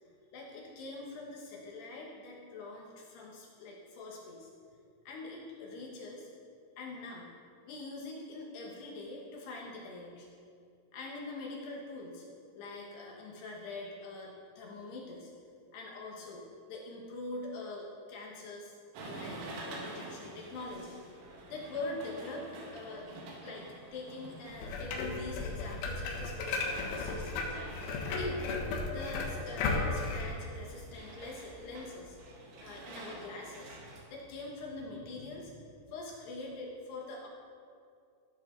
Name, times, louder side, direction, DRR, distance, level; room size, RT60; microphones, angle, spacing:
voice 1, 0.3-4.5 5.1-6.3 6.8-7.3 7.6-10.3 10.9-12.2 12.5-15.3 15.7-18.7 19.1-21.2 21.5-23.1 23.4-23.6 23.9-27.5 27.8-28.6 28.9-32.2 32.6-33.8 34.1-37.3, left 2 dB, 65° left, -2 dB, 3.0 m, -44 dB
sound 1, 18.9-34.0, right 2 dB, 70° right, 4.1 m, -49 dB
sound 2, 24.6-30.2, left 3 dB, 85° left, 4.2 m, -35 dB
15.0 x 10.5 x 4.0 m, 2.3 s
omnidirectional pair, 5.9 m